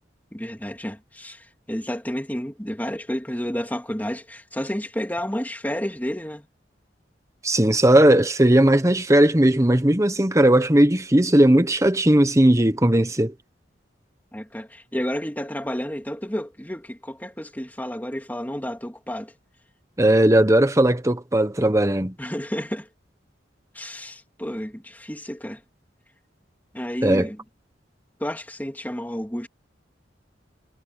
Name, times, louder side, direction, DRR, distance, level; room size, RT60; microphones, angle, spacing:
voice 1, 0.3-6.4 14.3-19.3 22.2-22.9 23.7-25.6 26.7-27.4 28.2-29.5, equal, 10° left, 3.1 m, -31 dB
voice 2, 7.4-13.3 20.0-22.1 27.0-27.3, right 1 dB, 15° right, 1.2 m, -17 dB
head